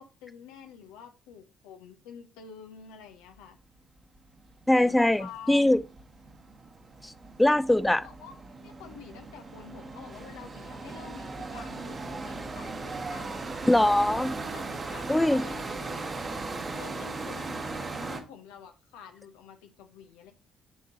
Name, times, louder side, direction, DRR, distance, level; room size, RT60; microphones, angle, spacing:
voice 1, 0.0-3.6 4.7-5.7 8.0-8.3 8.6-13.4 14.4-16.1 16.5-20.3, left 7 dB, 80° left, 0.7 m, -48 dB
sound 1, 4.0-4.1 4.3-18.2, right 3 dB, 40° right, 1.2 m, -38 dB
voice 2, 4.7-5.8 7.0-7.1 7.4-8.1 13.7-14.4 15.1-15.4, left 1 dB, 10° left, 0.4 m, -22 dB
10.5 x 3.7 x 2.8 m
hypercardioid pair, 45°, 0 cm